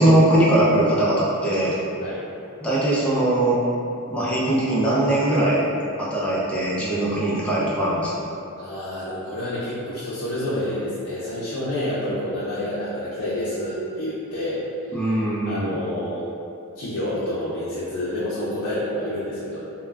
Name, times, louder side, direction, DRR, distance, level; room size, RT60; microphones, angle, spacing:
voice 1, 0.0-1.8 2.6-3.6 4.1-5.6 6.0-8.1 14.9-15.8, right 1 dB, 5° left, -8 dB, 0.4 m, -20 dB
voice 2, 8.6-14.6 15.0-15.2 15.5-16.2 16.8-19.6, left 1 dB, 70° left, -9 dB, 0.5 m, -28 dB
2.2 x 2.1 x 3.4 m, 2.7 s
head